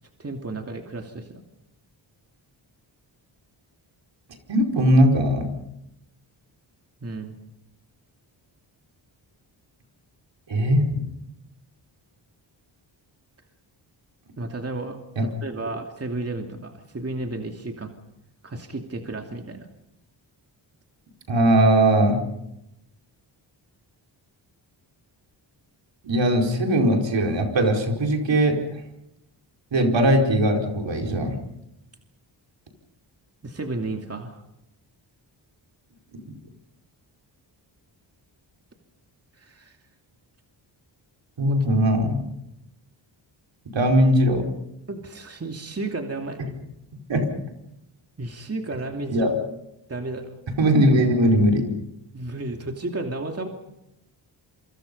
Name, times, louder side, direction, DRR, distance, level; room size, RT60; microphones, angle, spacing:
voice 1, 0.2-1.4 7.0-7.4 14.4-17.9 18.4-19.7 33.4-34.4 39.4-39.8 41.4-41.5 44.9-46.4 48.2-49.3 49.9-50.3 52.1-53.5, right 2 dB, 30° right, 3 dB, 2.7 m, -33 dB
voice 2, 4.5-5.5 10.5-10.9 15.2-15.3 21.3-22.2 26.0-28.6 29.7-31.4 36.1-36.3 41.4-42.2 43.7-44.5 47.1-47.3 49.1-49.3 50.6-51.6, right 1 dB, 70° right, 2 dB, 4.9 m, -19 dB
28.0 x 24.5 x 5.5 m, 0.85 s
cardioid pair, 80°, 46 cm